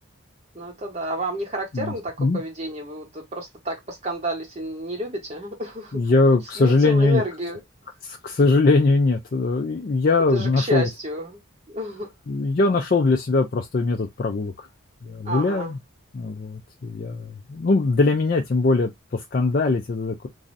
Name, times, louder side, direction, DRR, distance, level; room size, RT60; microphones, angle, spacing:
voice 1, 0.5-6.0 6.6-7.6 10.3-11.4 11.7-12.1 15.2-15.7, equal, 30° right, 0.8 m, -30 dB
voice 2, 5.9-7.2 8.0-10.9 12.3-14.7 15.0-15.8 16.1-20.3, left 3 dB, 45° left, 0.4 m, -21 dB
3.1 x 2.5 x 2.6 m
head